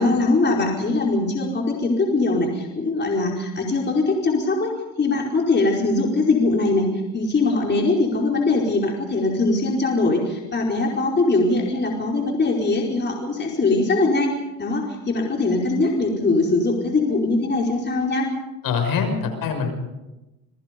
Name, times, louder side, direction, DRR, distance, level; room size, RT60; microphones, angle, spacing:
voice 1, 0.0-4.7 5.0-6.9 7.1-14.3 14.6-18.3, left 3 dB, 25° left, 0 dB, 4.8 m, -21 dB
voice 2, 18.6-19.7, left 5 dB, 55° left, 5 dB, 6.3 m, -24 dB
28.5 x 22.0 x 5.3 m, 1.0 s
supercardioid pair, 100°, 41 cm